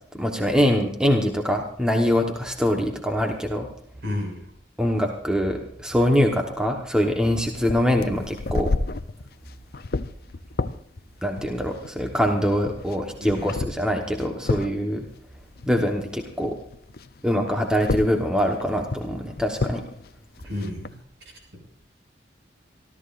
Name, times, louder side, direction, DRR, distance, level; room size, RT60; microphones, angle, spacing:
voice 1, 0.1-3.7 4.8-8.7 11.2-15.1 15.7-16.6 17.2-19.8, equal, 5° right, 2 dB, 1.1 m, -23 dB
voice 2, 4.0-4.4 13.2-13.5 20.4-21.0, left 1 dB, 70° right, 1 dB, 6.8 m, -30 dB
sound 1, 7.2-16.4 16.7-20.9, left 3 dB, 55° left, 0.5 m, -32 dB
27.0 x 13.5 x 2.5 m, 0.66 s
head